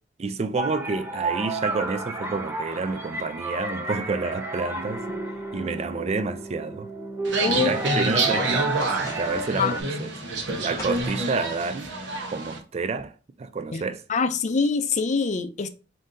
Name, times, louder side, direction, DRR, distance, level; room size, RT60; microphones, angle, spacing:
voice 1, 0.2-5.1 5.5-6.9 7.5-10.1 10.6-11.9 12.3-14.0, right 4 dB, 35° right, 0.3 m, -29 dB
sound 1, 0.6-9.8, right 2 dB, 10° right, 0.8 m, -31 dB
sound 2, 7.2-12.6, right 3 dB, 70° right, 0.8 m, -28 dB
voice 2, 7.4-7.7 9.6-9.7 13.7-13.8 14.1-15.7, left 4 dB, 40° left, 0.4 m, -24 dB
sound 3, 8.8-9.6 10.8-11.5, left 1 dB, 15° left, 1.0 m, -40 dB
3.9 x 2.6 x 3.7 m
head